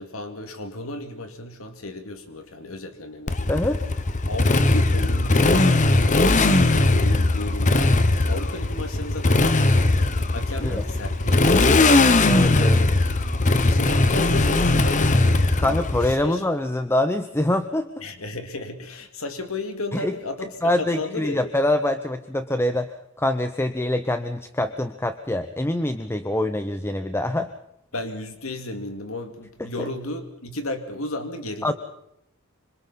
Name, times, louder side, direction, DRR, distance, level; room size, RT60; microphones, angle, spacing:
voice 1, 0.0-3.6 4.3-13.0 13.6-15.2 15.6-16.4 18.0-21.4 27.9-31.7, left 2 dB, 80° left, 6 dB, 2.4 m, -34 dB
Motorcycle, 3.3-16.1, left 2 dB, 35° left, 1.0 m, -19 dB
voice 2, 3.5-3.8 10.6-10.8 12.2-12.8 15.6-17.9 19.9-20.2 20.6-27.5 29.8-29.9 31.6-31.7, left 1 dB, 10° left, 9 dB, 0.7 m, -25 dB
26.0 x 26.0 x 4.2 m, 0.80 s
head